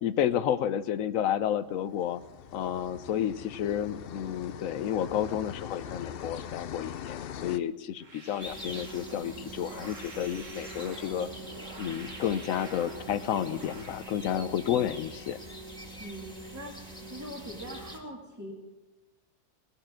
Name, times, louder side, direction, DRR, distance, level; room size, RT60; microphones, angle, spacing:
voice 1, 0.0-2.2 2.5-11.3 11.8-15.4, left 10 dB, 85° left, 13 dB, 1.1 m, -31 dB
sound 1, 1.8-7.6, left 9 dB, 60° left, 0.7 m, -42 dB
sound 2, 8.0-14.0, right 2 dB, 70° right, 2.2 m, -48 dB
sound 3, 8.4-18.0, right 1 dB, 5° left, 2.2 m, -44 dB
voice 2, 17.0-18.5, equal, 15° right, -2 dB, 1.9 m, -42 dB
19.5 x 6.8 x 7.4 m, 1.1 s
omnidirectional pair, 1.4 m